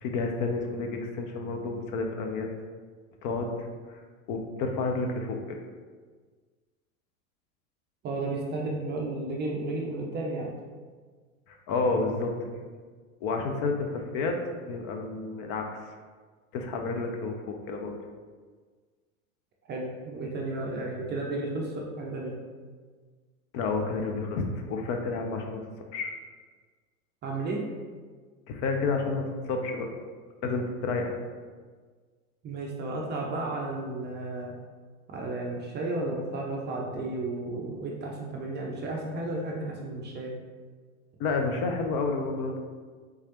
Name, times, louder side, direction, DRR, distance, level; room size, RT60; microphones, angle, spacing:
voice 1, 0.0-2.5 3.2-4.0 4.3-5.4 11.5-12.3 13.2-14.4 14.6-15.8 16.5-18.0 23.5-25.6 25.9-26.1 28.5-29.9 30.4-31.2 41.2-42.6, left 3 dB, 45° left, 3 dB, 0.6 m, -30 dB
voice 2, 8.0-10.5 19.7-22.3 27.2-27.6 32.4-34.5 35.1-40.3, right 2 dB, 25° right, -1 dB, 0.4 m, -33 dB
3.5 x 3.1 x 2.9 m, 1.5 s
hypercardioid pair, 100°, 44 cm